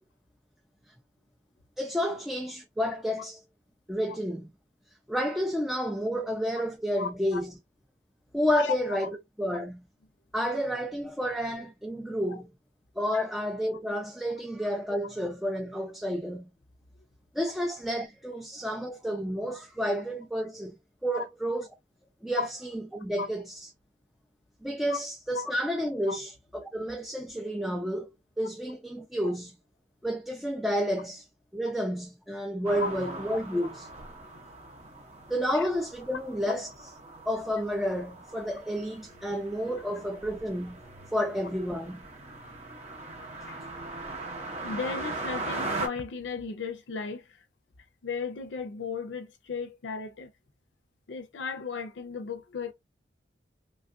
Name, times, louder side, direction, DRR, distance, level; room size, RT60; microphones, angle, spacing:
voice 1, 1.8-3.4 3.9-4.5 5.1-7.5 8.3-9.8 10.3-12.5 13.0-16.5 17.3-20.7 21.0-21.7 22.2-23.5 24.6-28.1 28.4-29.6 30.0-31.2 31.5-33.9 35.3-36.7 37.3-40.8 41.1-42.1, equal, ahead, 0.3 m, -30 dB
voice 2, 6.9-7.4 8.5-9.0 9.5-9.6 12.3-12.4 13.1-13.2 21.1-21.2 22.4-22.5 23.2-23.3 24.9-25.0 25.3-25.5 26.1-26.2 29.2-29.3 32.8-32.9 34.3-34.4 35.4-35.7 43.5-43.7 44.5-47.3 48.0-50.3 51.1-52.7, left 5 dB, 85° left, 0.5 m, -35 dB
sound 1, 32.7-45.9, right 2 dB, 35° right, 0.8 m, -40 dB
3.2 x 2.3 x 2.5 m
head